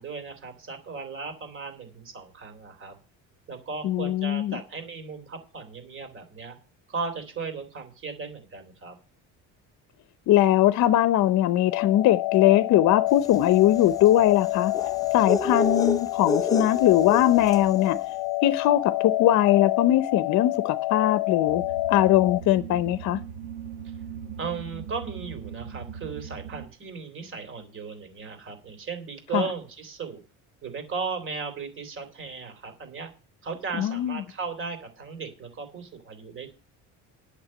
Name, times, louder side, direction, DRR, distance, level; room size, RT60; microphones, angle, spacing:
voice 1, 0.0-2.9 3.5-6.6 6.9-9.0 23.8-23.9 24.4-30.2 30.6-33.1 33.4-36.5, right 5 dB, 35° right, 3.4 m, -36 dB
voice 2, 3.8-4.6 10.3-14.7 15.1-18.0 18.4-21.6 21.9-23.2 29.3-29.4 33.8-34.2, left 13 dB, 50° left, 0.7 m, -21 dB
sound 1, 11.7-22.4, left 20 dB, 85° left, 0.6 m, -28 dB
sound 2, 13.2-17.8, left 1 dB, 10° left, 0.5 m, -31 dB
sound 3, 21.5-26.6, right 7 dB, 80° right, 1.9 m, -39 dB
11.0 x 6.8 x 7.6 m
cardioid pair, 170°, 36 cm